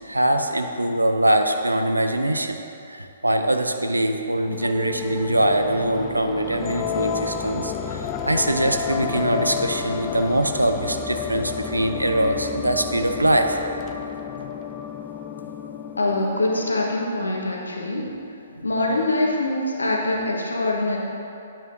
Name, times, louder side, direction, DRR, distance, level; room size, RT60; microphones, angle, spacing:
voice 1, 0.1-2.6 2.9-13.6 18.6-18.7, right 1 dB, 85° right, 6 dB, 0.6 m, -23 dB
sound 1, 4.4-17.4, left 7 dB, 25° left, 0.4 m, -31 dB
voice 2, 16.0-18.1 18.6-21.0, left 2 dB, 75° left, -1 dB, 1.4 m, -24 dB
9.5 x 9.0 x 2.8 m, 2.8 s
figure-of-eight pair, 125°, 0 cm